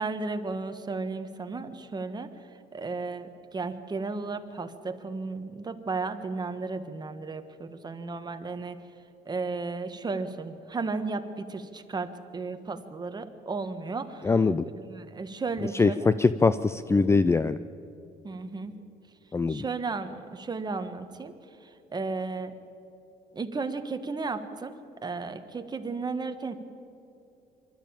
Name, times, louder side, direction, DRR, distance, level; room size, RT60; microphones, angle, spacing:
voice 1, 0.0-2.3 2.7-8.8 9.2-14.3 14.9-16.1 18.2-18.7 19.5-21.3 21.6-22.5 23.3-24.7 25.0-26.6, right 4 dB, 25° right, 8 dB, 1.5 m, -34 dB
voice 2, 14.2-14.6 15.7-17.6 19.3-19.6, left 4 dB, 15° left, 14 dB, 0.4 m, -22 dB
24.5 x 12.5 x 8.9 m, 2.8 s
cardioid pair, 110°, 17 cm